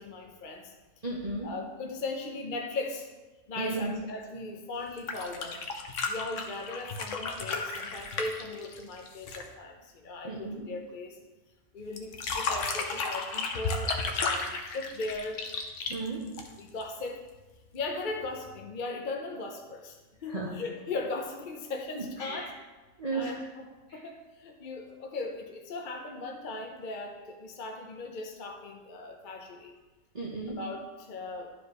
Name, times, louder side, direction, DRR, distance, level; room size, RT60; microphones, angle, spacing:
voice 1, 0.0-1.0 1.4-3.1 3.5-5.6 6.0-11.2 11.7-15.4 16.6-17.2 17.7-22.5 23.1-23.7 23.9-29.7 30.6-31.5, left 3 dB, 45° left, 2 dB, 0.7 m, -38 dB
voice 2, 1.0-1.5 3.6-3.9 10.2-10.7 15.9-16.2 20.3-20.5 21.9-22.5 23.0-23.3 30.1-30.6, right 3 dB, 35° right, -5 dB, 0.9 m, -34 dB
sound 1, 4.9-9.5 12.0-16.8 18.2-18.3, left 4 dB, 65° left, 1.1 m, -33 dB
11.0 x 5.1 x 3.1 m, 1.2 s
omnidirectional pair, 1.4 m